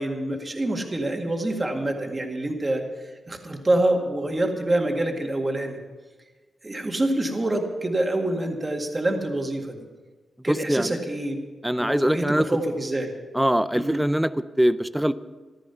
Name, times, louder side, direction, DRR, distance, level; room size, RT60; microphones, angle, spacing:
voice 1, 0.0-2.8 3.3-5.8 6.6-9.9 10.4-11.4 11.8-13.1 13.7-14.0, right 1 dB, 25° right, 3 dB, 1.8 m, -26 dB
voice 2, 10.5-11.0 11.6-12.5 13.3-15.1, equal, 5° right, 14 dB, 0.5 m, -22 dB
14.5 x 13.5 x 5.7 m, 1.3 s
wide cardioid pair, 125°, 0 cm